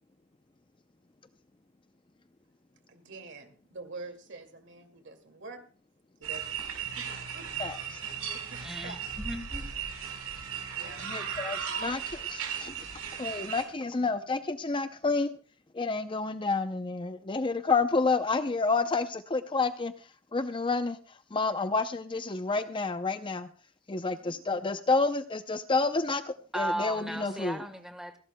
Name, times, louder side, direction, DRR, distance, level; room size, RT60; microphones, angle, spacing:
voice 1, 2.9-5.6 6.2-7.8 8.1-9.1 10.7-11.5 24.0-24.4, right 3 dB, 55° right, 2.2 m, -47 dB
sound 1, 6.2-13.6, right 7 dB, 75° right, 4.2 m, -36 dB
voice 2, 7.6-8.0 11.0-12.9 13.2-15.3 15.7-19.9 20.3-23.5 23.9-27.6, left 3 dB, 25° left, 0.5 m, -29 dB
voice 3, 8.6-8.9 9.2-9.7 26.5-28.2, right 1 dB, ahead, 1.2 m, -35 dB
28.5 x 12.0 x 2.2 m
head